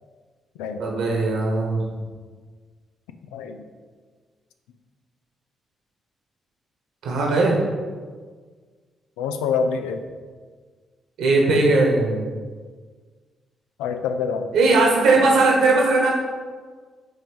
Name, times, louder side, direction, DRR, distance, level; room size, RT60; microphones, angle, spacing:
voice 1, 0.7-2.0 7.0-7.6 11.2-12.2 14.5-16.1, right 3 dB, 75° right, -1 dB, 1.4 m, -19 dB
voice 2, 3.3-3.6 9.2-10.0 13.8-14.5, left 5 dB, 85° left, 7 dB, 0.4 m, -26 dB
5.4 x 3.8 x 5.2 m, 1.5 s
hypercardioid pair, 50°, 0 cm